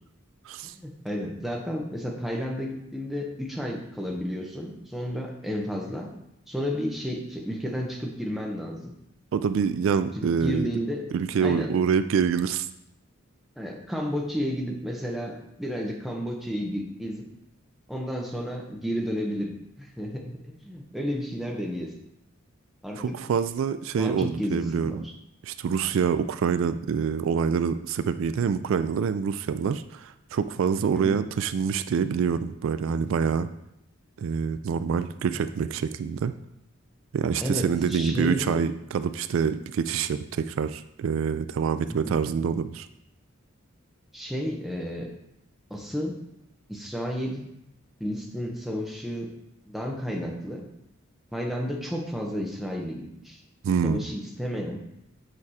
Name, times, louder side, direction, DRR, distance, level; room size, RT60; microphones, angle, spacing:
voice 1, 0.7-6.1 6.5-8.9 10.2-11.0 11.4-11.7 13.6-17.2 17.9-19.5 19.8-21.9 22.8-23.2 24.0-25.1 30.9-31.2 37.4-38.6 41.9-42.1 44.1-45.1 45.7-46.1 46.7-47.5 48.0-49.3 49.7-50.6 51.3-53.4 53.8-54.8, equal, ahead, -1 dB, 0.9 m, -32 dB
voice 2, 9.3-10.7 11.1-12.7 23.0-25.0 25.4-33.5 34.2-36.3 37.1-42.9 53.6-54.1, right 6 dB, 75° right, 12 dB, 0.3 m, -26 dB
6.8 x 4.7 x 4.2 m, 0.82 s
head